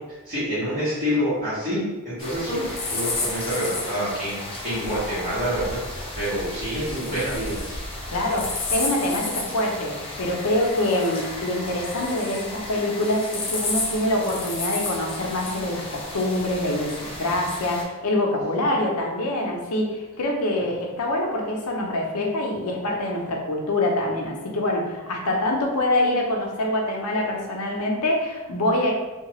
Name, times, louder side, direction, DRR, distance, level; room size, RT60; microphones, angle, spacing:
voice 1, 0.1-7.8, equal, 40° right, -15 dB, 1.4 m, -27 dB
sound 1, 2.2-17.8, left 2 dB, 25° left, 0.5 m, -32 dB
voice 2, 8.1-28.9, left 1 dB, 80° left, 0 dB, 0.6 m, -25 dB
2.7 x 2.3 x 2.9 m, 1.2 s
head